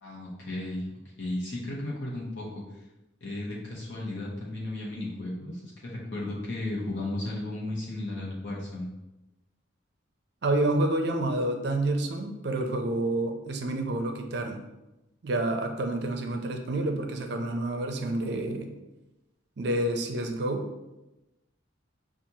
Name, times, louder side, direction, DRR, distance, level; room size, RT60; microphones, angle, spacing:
voice 1, 0.0-0.9 1.2-2.6 3.2-8.9, left 1 dB, 65° left, -5 dB, 0.9 m, -34 dB
voice 2, 10.4-14.6 15.2-18.7 19.6-20.6, right 1 dB, 55° right, 4 dB, 0.5 m, -28 dB
6.0 x 2.4 x 2.7 m, 0.99 s
head